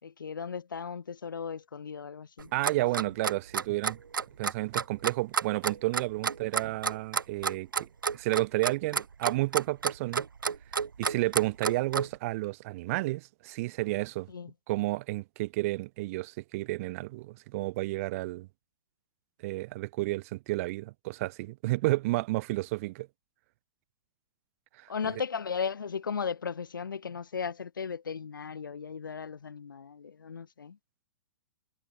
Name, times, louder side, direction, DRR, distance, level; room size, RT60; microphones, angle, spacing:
voice 1, 0.0-2.5 14.3-14.5 24.9-30.8, left 6 dB, 70° left, 3.4 m, -36 dB
Clock, 2.4-12.1, right 6 dB, 75° right, 1.5 m, -30 dB
voice 2, 2.5-4.0 4.4-7.9 8.1-10.2 11.0-14.3 14.7-18.5 19.4-23.1 24.8-25.1, right 20 dB, 40° right, 1.3 m, -31 dB
figure-of-eight pair, 115°, 11 cm